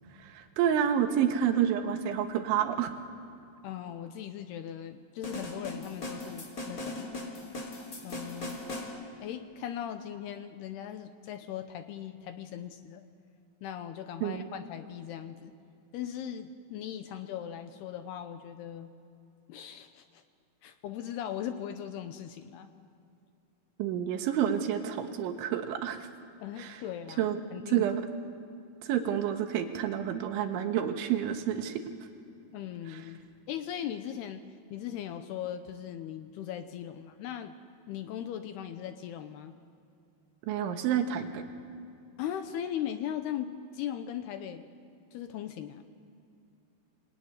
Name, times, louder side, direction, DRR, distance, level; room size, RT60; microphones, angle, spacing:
voice 1, 0.2-2.9 14.2-14.5 23.8-26.1 26.6-26.8 27.2-27.4 27.7-28.1 28.8-31.8 40.5-41.4, right 9 dB, 80° right, 6 dB, 3.8 m, -29 dB
voice 2, 3.6-7.1 8.0-8.6 9.2-13.0 13.6-15.5 15.9-18.9 19.5-20.2 20.6-22.7 26.4-27.8 32.5-33.2 33.5-34.4 34.7-37.5 37.9-39.5 42.2-44.7 45.1-45.9, left 10 dB, 75° left, 9 dB, 2.6 m, -39 dB
sound 1, 5.2-8.9, left 2 dB, 20° left, 3.1 m, -39 dB
26.5 x 22.5 x 9.7 m, 2.6 s
omnidirectional pair, 5.4 m